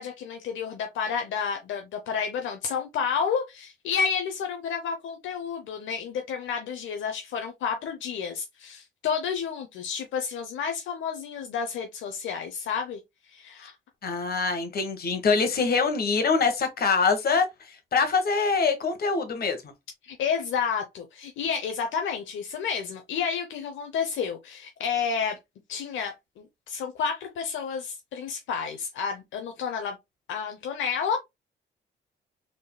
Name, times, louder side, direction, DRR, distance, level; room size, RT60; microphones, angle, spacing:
voice 1, 0.0-13.0 13.3-13.7 20.0-25.4 25.7-30.0 30.3-31.2, left 6 dB, 75° left, 0.7 m, -30 dB
voice 2, 14.0-17.4 17.9-19.6, left 4 dB, 50° left, 1.3 m, -24 dB
3.9 x 3.7 x 2.2 m
cardioid pair, 90°, 20 cm